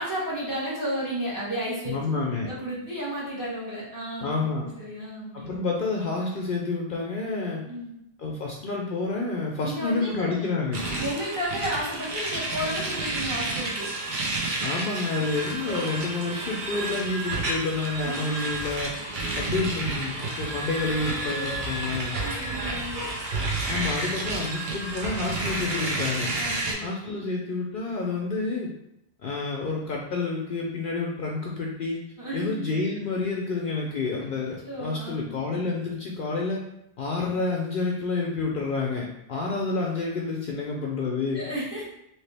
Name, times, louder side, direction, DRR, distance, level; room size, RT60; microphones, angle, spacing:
voice 1, 0.0-5.6 7.7-7.9 9.6-10.3 10.9-13.9 15.1-15.2 15.6-16.1 18.0-18.5 19.2-19.5 21.3-21.6 22.2-23.0 26.3-27.2 32.2-32.6 34.2-34.3 34.6-35.6 37.2-37.3 41.3-41.8, equal, 20° right, -7 dB, 1.1 m, -33 dB
voice 2, 1.9-2.5 4.2-4.7 5.3-7.6 8.2-10.8 14.6-18.9 19.3-22.2 23.7-26.3 26.8-28.7 29.2-32.0 32.3-36.6 37.0-41.5, left 3 dB, 60° left, -1 dB, 0.7 m, -29 dB
sound 1, 10.7-26.7, right 2 dB, 55° right, 0.8 m, -30 dB
3.0 x 2.9 x 3.3 m, 0.81 s
omnidirectional pair, 1.1 m